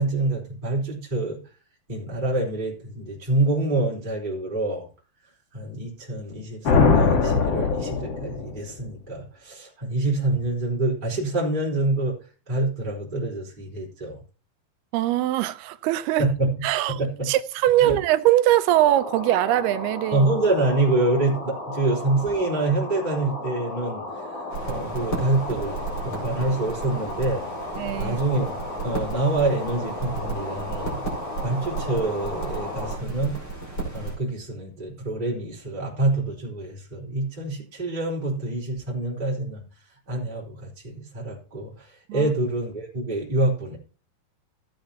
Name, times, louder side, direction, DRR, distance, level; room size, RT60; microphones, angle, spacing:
voice 1, 0.0-1.4 1.9-4.9 5.5-12.2 12.5-14.2 16.2-16.5 16.9-17.3 17.8-18.0 20.1-27.5 28.0-28.6 28.8-31.0 31.4-33.4 33.9-39.6 40.1-43.8, right 2 dB, 10° right, 4.0 m, -26 dB
sound 1, 6.6-8.6, left 4 dB, 50° left, 1.4 m, -20 dB
voice 2, 14.9-16.3 16.6-17.0 17.3-20.3 27.8-28.2 42.1-42.3, right 14 dB, 90° right, 2.7 m, -22 dB
sound 2, 18.7-33.0, left 1 dB, 65° left, 5.3 m, -35 dB
sound 3, 24.5-34.2, right 3 dB, 25° left, 5.4 m, -34 dB
17.0 x 9.0 x 2.9 m
omnidirectional pair, 4.5 m